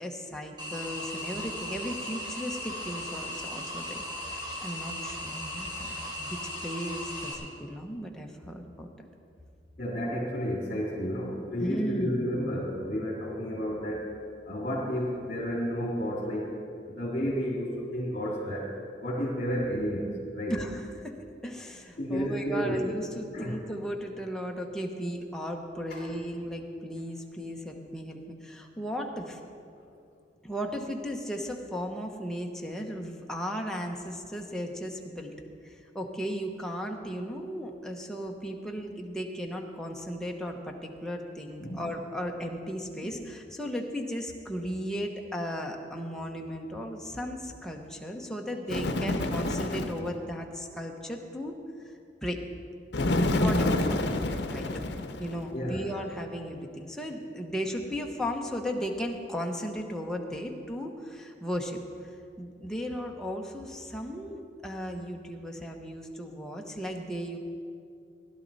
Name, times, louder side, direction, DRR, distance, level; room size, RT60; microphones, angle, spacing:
voice 1, 0.0-8.9 11.6-12.3 20.5-29.4 30.4-35.3 35.6-51.6 52.2-52.4 53.2-54.1 54.4-54.7 55.2-62.1 62.4-67.4, equal, 5° left, 1 dB, 0.9 m, -36 dB
sound 1, 0.6-7.3, left 1 dB, 25° right, 2.3 m, -37 dB
voice 2, 9.8-14.1 14.5-16.5 16.9-18.7 19.0-20.1 20.3-20.6 22.0-22.9 23.3-23.5 25.9-26.1 29.7-29.8 41.6-41.8 43.0-43.1 55.5-55.9, equal, 45° left, -5 dB, 2.2 m, -31 dB
Bird, 48.7-50.1 52.9-55.4, left 2 dB, 70° left, 0.8 m, -28 dB
16.0 x 11.5 x 4.1 m, 2.4 s
head